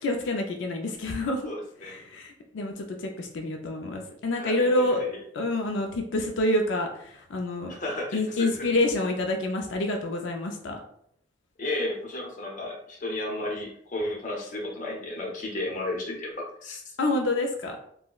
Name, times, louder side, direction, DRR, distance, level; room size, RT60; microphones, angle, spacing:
voice 1, 0.0-1.5 1.8-5.0 5.3-7.7 8.1-10.8 17.0-17.8, left 1 dB, 90° left, 3 dB, 0.4 m, -27 dB
voice 2, 1.5-2.0 4.3-4.7 7.7-8.6 11.6-16.3 16.6-16.8, left 1 dB, 45° left, 0 dB, 0.6 m, -33 dB
3.7 x 2.1 x 2.3 m, 0.67 s
head